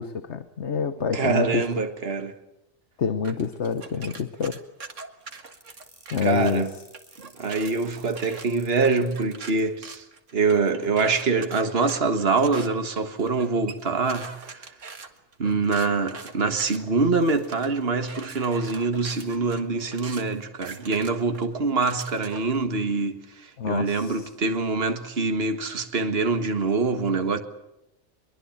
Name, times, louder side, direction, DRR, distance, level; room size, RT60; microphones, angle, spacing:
voice 1, 0.0-1.9 3.0-4.6 6.1-6.6 23.6-24.3, left 6 dB, 65° left, 1.4 m, -27 dB
voice 2, 1.1-2.3 6.2-6.7 7.3-10.0 10.3-14.7 15.4-27.4, right 4 dB, 50° right, 1.9 m, -25 dB
sound 1, 3.2-6.5 6.9-22.6, right 4 dB, 75° right, 2.2 m, -43 dB
sound 2, 5.5-9.6, right 1 dB, 20° right, 4.6 m, -53 dB
23.5 x 22.5 x 8.8 m
omnidirectional pair, 1.3 m